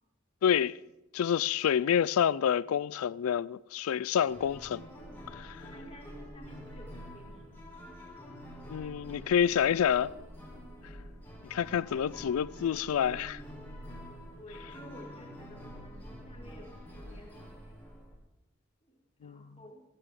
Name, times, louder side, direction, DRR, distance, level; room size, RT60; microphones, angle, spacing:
voice 1, 0.4-0.8 1.1-4.8 5.3-5.6 8.7-10.1 11.5-13.4 19.2-19.4, left 8 dB, 90° left, 0.3 m, -28 dB
sound 1, 4.3-18.2, equal, 10° left, 2.5 m, -47 dB
voice 2, 5.6-7.8 14.4-17.8 18.8-19.8, equal, 30° left, 2.2 m, -53 dB
14.5 x 12.5 x 3.7 m
head